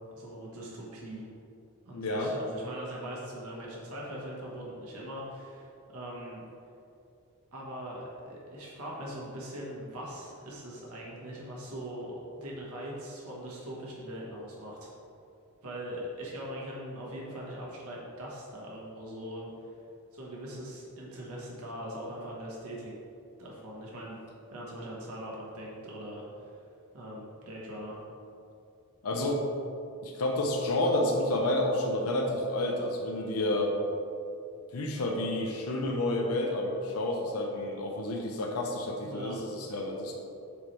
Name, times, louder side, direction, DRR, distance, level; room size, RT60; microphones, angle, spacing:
voice 1, 0.2-1.3 1.8-6.4 7.5-14.9 15.6-19.7 20.1-23.0 23.4-24.2 24.5-26.6 26.9-28.0 39.0-39.3, equal, 75° right, -4 dB, 1.1 m, -41 dB
voice 2, 1.9-2.3 29.0-29.5 30.0-33.7 34.7-40.1, left 1 dB, 80° left, 0 dB, 0.7 m, -30 dB
7.2 x 3.1 x 4.3 m, 2.6 s
head